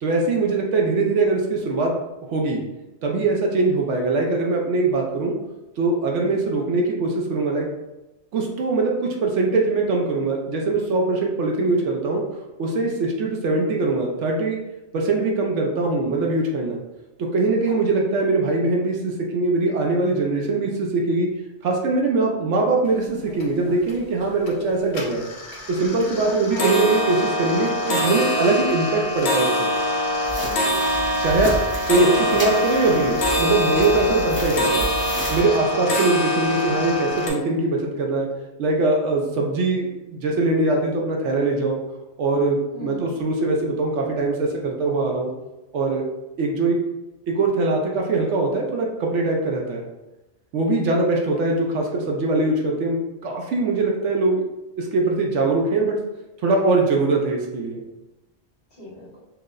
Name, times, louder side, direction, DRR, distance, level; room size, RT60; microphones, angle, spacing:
voice 1, 0.0-1.9 2.3-2.6 3.0-5.3 5.8-7.7 8.3-12.2 12.6-14.6 14.9-16.8 17.2-21.3 21.6-25.3 25.7-29.7 31.2-31.5 31.9-34.9 35.3-38.3 38.6-41.8 42.2-45.3 45.7-46.0 46.4-46.8 47.3-49.9 50.5-54.4 54.8-55.9 56.4-57.8, right 3 dB, 70° right, 0 dB, 0.9 m, -22 dB
sound 1, 22.9-23.0 23.3-23.9 24.3-24.6 24.9-37.3, left 1 dB, 65° left, 0.8 m, -24 dB
voice 2, 26.2-26.7 30.3-31.0 42.7-43.1 58.7-59.2, left 2 dB, 50° left, -9 dB, 1.8 m, -40 dB
sound 2, 30.3-35.4, right 1 dB, 15° right, 0.5 m, -32 dB
4.5 x 2.0 x 2.4 m, 0.99 s
omnidirectional pair, 1.3 m